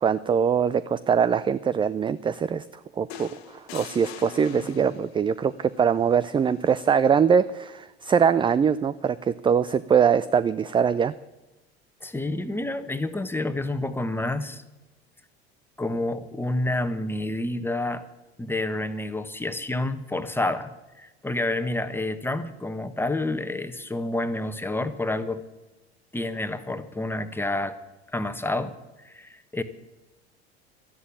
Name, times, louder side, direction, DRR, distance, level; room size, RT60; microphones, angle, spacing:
voice 1, 0.0-2.6 3.0-11.1, right 7 dB, 15° right, 16 dB, 0.4 m, -22 dB
sound 1, 3.1-5.2 6.6-6.9, left 10 dB, 70° left, 1.3 m, -42 dB
voice 2, 12.0-14.6 15.8-18.0 18.4-20.7 21.0-25.4 26.1-27.8 28.1-28.7 29.0-29.6, left 2 dB, 5° left, 9 dB, 1.4 m, -29 dB
13.0 x 11.0 x 8.5 m, 1.0 s
figure-of-eight pair, 70°, 32 cm